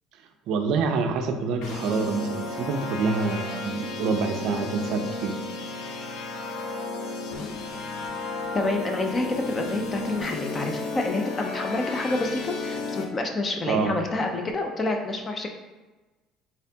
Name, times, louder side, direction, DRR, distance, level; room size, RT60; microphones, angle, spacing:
voice 1, 0.5-5.4 13.7-14.0, right 4 dB, 60° right, 6 dB, 0.4 m, -26 dB
sound 1, 1.6-13.0, left 3 dB, 65° left, 0.6 m, -33 dB
voice 2, 8.5-15.5, left 2 dB, 20° left, 4 dB, 0.4 m, -28 dB
4.2 x 3.5 x 2.7 m, 1.2 s
cardioid pair, 165°, 0 cm